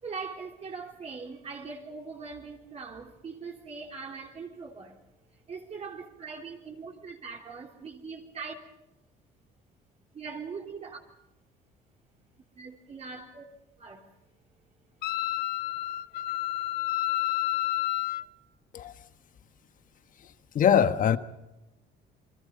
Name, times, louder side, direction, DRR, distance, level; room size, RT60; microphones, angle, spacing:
voice 1, 0.0-5.0 5.3-8.5 10.1-11.0 12.5-13.4 13.8-14.1 16.1-16.4, right 5 dB, 40° right, 3.3 m, -41 dB
Wind instrument woodwind instrument, 15.0-18.2, left 17 dB, 75° left, 0.8 m, -30 dB
voice 2, 20.5-21.2, left 8 dB, 50° left, 1.4 m, -22 dB
28.5 x 23.0 x 5.4 m
cardioid pair, 110°, 17 cm